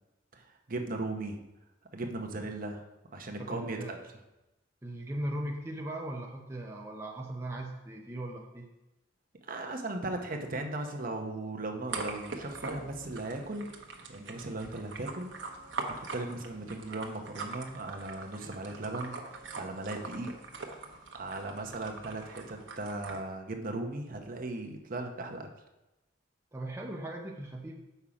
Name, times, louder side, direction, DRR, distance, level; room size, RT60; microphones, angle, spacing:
voice 1, 0.3-1.4 1.9-2.8 3.1-4.0 9.5-13.7 14.1-15.3 16.0-20.3 21.1-25.5, right 2 dB, 45° right, 3 dB, 0.9 m, -37 dB
voice 2, 3.4-3.9 4.8-8.7 26.5-27.8, right 1 dB, 15° right, 0 dB, 0.6 m, -38 dB
sound 1, 11.9-23.2, right 3 dB, 70° right, 1.0 m, -42 dB
sound 2, 15.2-20.4, right 1 dB, 5° left, 2.0 m, -59 dB
7.1 x 5.6 x 4.9 m, 0.98 s
head